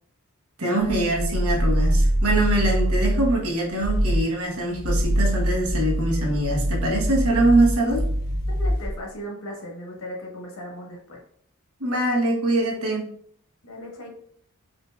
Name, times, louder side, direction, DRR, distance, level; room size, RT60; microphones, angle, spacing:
voice 1, 0.6-8.0 11.8-13.0, right 1 dB, 85° right, -1 dB, 1.1 m, -23 dB
sound 1, 0.9-3.4 3.8-4.3 4.7-9.0, equal, 45° left, 0.6 m, -24 dB
voice 2, 8.5-11.2 13.6-14.1, equal, 70° left, -1 dB, 1.2 m, -37 dB
5.0 x 2.6 x 2.3 m, 0.63 s
head